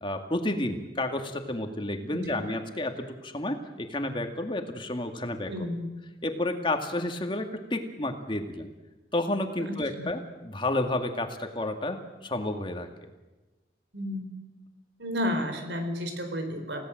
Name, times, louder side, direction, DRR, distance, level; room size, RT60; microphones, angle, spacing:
voice 1, 0.0-5.5 6.2-8.7 9.1-12.9, left 1 dB, 30° left, 5 dB, 2.1 m, -31 dB
voice 2, 5.5-5.9 9.6-10.2 13.9-14.3 15.0-16.9, left 1 dB, 85° right, 6 dB, 4.6 m, -32 dB
29.5 x 17.5 x 7.8 m, 1.1 s
head